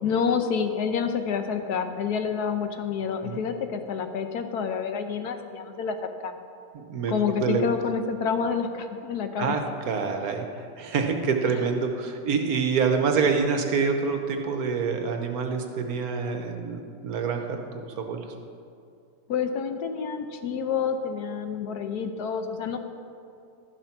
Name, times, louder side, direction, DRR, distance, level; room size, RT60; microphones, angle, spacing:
voice 1, 0.0-6.4 7.1-9.6 11.5-11.6 19.3-22.8, left 6 dB, 70° left, 7 dB, 1.2 m, -28 dB
voice 2, 6.7-7.1 7.4-7.6 9.4-9.6 9.9-10.4 10.8-18.2, right 5 dB, 65° right, 4 dB, 1.3 m, -26 dB
13.0 x 7.3 x 5.8 m, 2.5 s
omnidirectional pair, 1.9 m